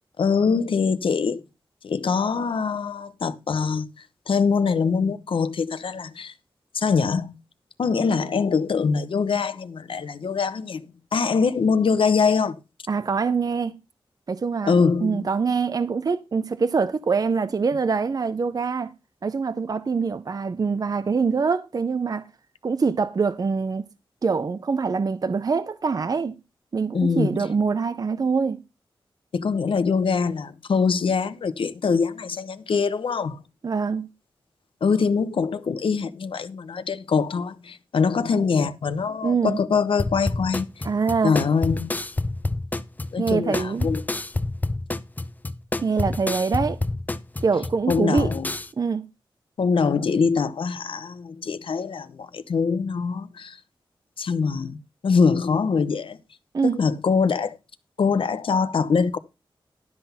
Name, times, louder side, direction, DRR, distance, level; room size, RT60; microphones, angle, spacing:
voice 1, 0.2-1.4 1.8-3.9 4.3-6.3 6.7-7.3 7.8-10.8 11.1-12.6 14.6-15.2 26.9-27.5 29.3-33.4 34.8-40.7 41.2-42.0 43.1-44.0 47.9-48.5 49.6-53.6 54.2-54.8 55.0-56.2 56.6-57.6 58.0-59.2, left 5 dB, 80° left, 0.9 m, -23 dB
voice 2, 12.9-13.7 14.3-18.9 19.2-22.3 22.6-23.9 24.2-26.4 26.7-28.6 33.6-34.1 39.2-39.6 40.8-41.3 43.2-43.9 45.8-46.8 47.4-48.3 48.8-49.1 56.5-56.8, right 5 dB, 45° right, 0.6 m, -24 dB
sound 1, 40.0-48.7, left 2 dB, 20° left, 0.7 m, -28 dB
12.0 x 6.0 x 5.6 m
wide cardioid pair, 140°, 9 cm